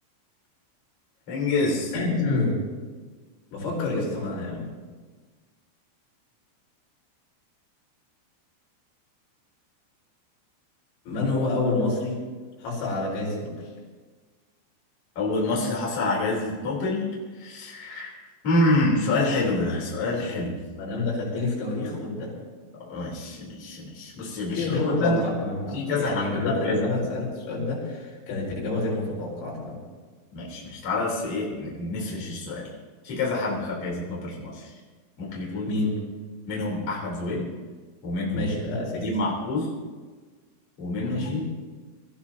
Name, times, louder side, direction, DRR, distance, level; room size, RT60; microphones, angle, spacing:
voice 1, 1.3-1.9 15.2-18.1 18.4-20.6 22.7-25.2 25.7-26.9 30.3-32.7 33.0-34.7 35.2-35.7 36.5-37.5 38.0-38.5 39.0-39.7 40.8-41.4, left 2 dB, 35° left, -5 dB, 4.4 m, -27 dB
voice 2, 1.9-2.6 3.5-4.7 11.1-12.2 12.6-13.5 18.7-18.8 20.8-22.3 24.5-29.8 35.7-36.0 38.3-39.0 41.1-41.4, left 2 dB, 85° left, -5 dB, 7.3 m, -28 dB
25.5 x 14.5 x 2.9 m, 1.4 s
omnidirectional pair, 5.8 m